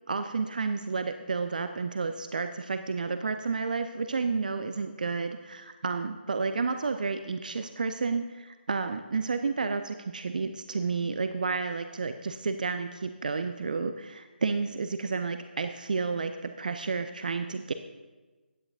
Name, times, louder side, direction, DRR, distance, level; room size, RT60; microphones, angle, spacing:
voice 1, 0.1-17.7, right 4 dB, 50° right, 9 dB, 0.5 m, -31 dB
15.5 x 9.8 x 2.6 m, 1.3 s
figure-of-eight pair, 145°, 6 cm